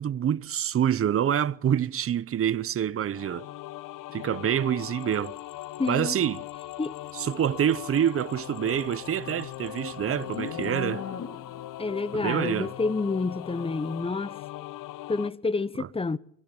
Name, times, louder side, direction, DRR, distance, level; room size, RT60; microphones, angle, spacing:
voice 1, 0.0-3.5 4.1-5.3 5.9-6.4 7.1-11.0 12.1-12.7 15.8-15.9, right 9 dB, 40° right, 0.8 m, -26 dB
sound 1, 3.1-15.3, left 15 dB, 65° left, 0.8 m, -40 dB
sound 2, 5.0-10.8, left 11 dB, 85° left, 4.8 m, -56 dB
voice 2, 5.8-6.2 6.8-7.0 11.8-14.3 15.1-16.2, left 3 dB, 15° left, 0.9 m, -28 dB
Livestock farm animals working animals, 8.5-11.7, left 6 dB, 50° left, 3.7 m, -39 dB
24.0 x 17.0 x 7.0 m
cardioid pair, 95°, 34 cm